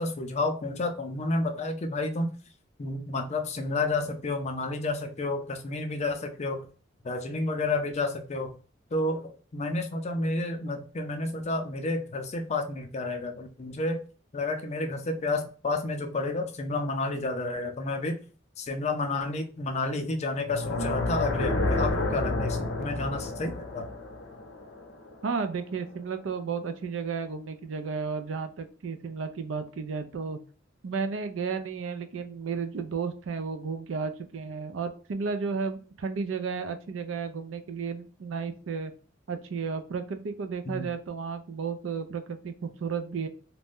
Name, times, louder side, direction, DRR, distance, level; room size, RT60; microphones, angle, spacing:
voice 1, 0.0-2.3 2.8-6.7 7.0-8.5 8.9-14.0 14.3-18.2 18.6-23.9 40.7-40.9, left 2 dB, 35° left, 5 dB, 0.4 m, -30 dB
sound 1, 20.4-25.5, left 2 dB, 85° left, 0.7 m, -30 dB
voice 2, 25.2-30.4 30.8-38.9 39.3-43.3, right 5 dB, 70° right, 8 dB, 0.4 m, -33 dB
2.5 x 2.1 x 3.4 m, 0.38 s
head